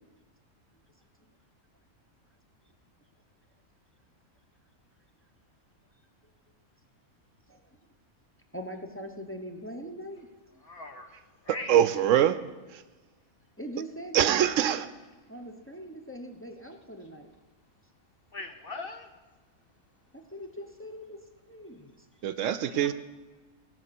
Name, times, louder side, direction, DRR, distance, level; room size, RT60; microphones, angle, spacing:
voice 1, 8.5-10.3 10.5-10.6 13.6-14.6 15.3-17.3 20.3-21.2 21.5-21.9 22.2-22.3, equal, 10° left, 3 dB, 0.7 m, -41 dB
voice 2, 10.6-11.1 11.4-11.7 18.3-19.1 22.8-22.9, left 3 dB, 55° left, 7 dB, 0.7 m, -40 dB
voice 3, 11.5-12.4 12.7-12.8 14.1-14.9 22.2-22.9, right 10 dB, 70° right, 13 dB, 0.9 m, -24 dB
17.0 x 5.8 x 6.8 m, 1.2 s
omnidirectional pair, 1.4 m